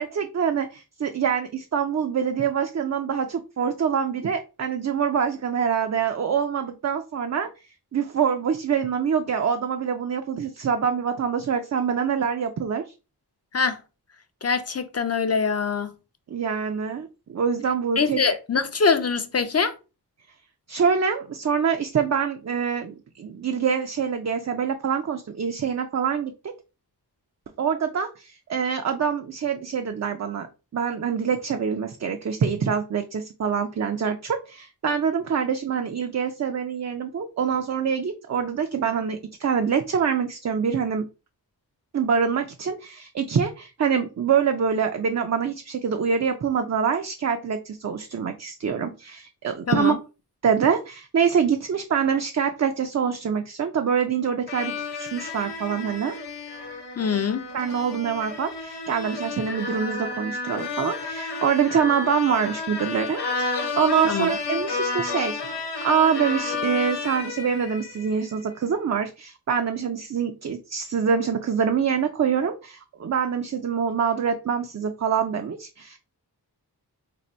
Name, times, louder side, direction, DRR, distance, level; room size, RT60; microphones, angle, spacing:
voice 1, 0.0-7.5 7.9-12.8 16.3-18.4 20.7-26.5 27.6-30.5 30.7-41.1 41.9-49.9 50.4-56.1 57.5-76.0, right 7 dB, 45° right, 0.4 m, -25 dB
voice 2, 14.4-15.9 18.0-19.7 49.7-50.0 57.0-57.4 64.0-64.3, left 5 dB, 40° left, 0.5 m, -23 dB
sound 1, 54.5-68.2, left 3 dB, 75° left, 0.9 m, -31 dB
2.7 x 2.5 x 4.2 m
wide cardioid pair, 75°, 40 cm